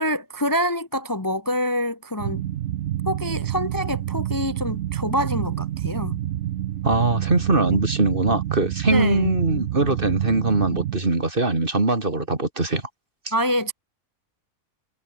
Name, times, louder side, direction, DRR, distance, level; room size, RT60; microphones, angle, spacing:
voice 1, 0.0-2.4 3.1-6.2 7.7-7.8 8.9-9.4 13.3-13.7, equal, 15° left, 1.2 m, -26 dB
sound 1, 2.2-11.0, right 12 dB, 65° right, 0.9 m, -28 dB
voice 2, 6.8-12.8 13.2-13.3, right 2 dB, 35° right, 3.0 m, -22 dB
omnidirectional pair, 1.5 m